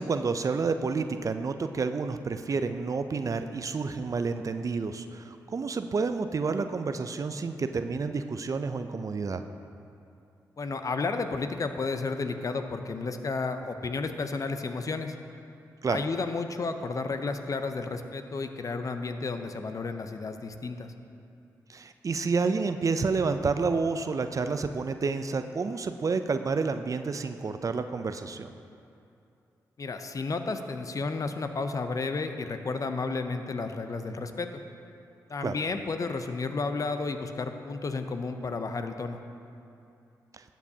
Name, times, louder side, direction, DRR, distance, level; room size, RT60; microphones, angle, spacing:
voice 1, 0.0-9.4 15.8-16.0 21.7-28.5 35.4-35.5, right 4 dB, 45° right, 9 dB, 0.4 m, -29 dB
voice 2, 10.6-15.1 15.9-20.9 29.8-34.6 35.3-39.2, left 4 dB, 45° left, 7 dB, 0.6 m, -32 dB
13.0 x 7.3 x 2.8 m, 2.6 s
supercardioid pair, 45°, 8 cm